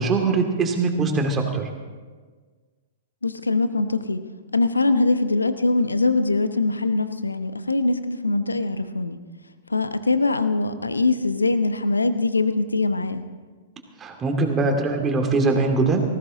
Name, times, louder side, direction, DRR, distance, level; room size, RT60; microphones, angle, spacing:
voice 1, 0.0-1.7 14.0-16.0, right 3 dB, 20° right, 3 dB, 2.4 m, -22 dB
voice 2, 3.2-4.3 4.5-9.2 9.7-13.3, left 3 dB, 85° left, 11 dB, 0.8 m, -22 dB
19.0 x 15.5 x 3.7 m, 1.4 s
figure-of-eight pair, 105°, 0 cm